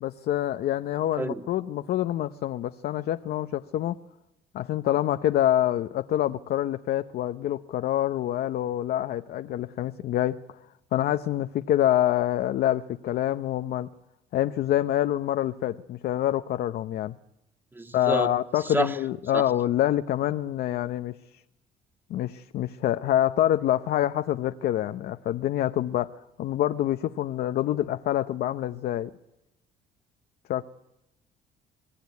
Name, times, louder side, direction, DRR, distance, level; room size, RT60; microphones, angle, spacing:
voice 1, 0.0-4.0 4.5-10.4 10.9-13.9 14.3-17.1 17.9-21.2 22.1-29.1 30.5-30.6, left 12 dB, 65° left, 9 dB, 0.9 m, -26 dB
voice 2, 17.7-18.3 18.6-18.9 19.3-19.4, right 2 dB, 10° right, 7 dB, 1.8 m, -28 dB
26.0 x 20.0 x 9.6 m, 0.90 s
cardioid pair, 110°, 17 cm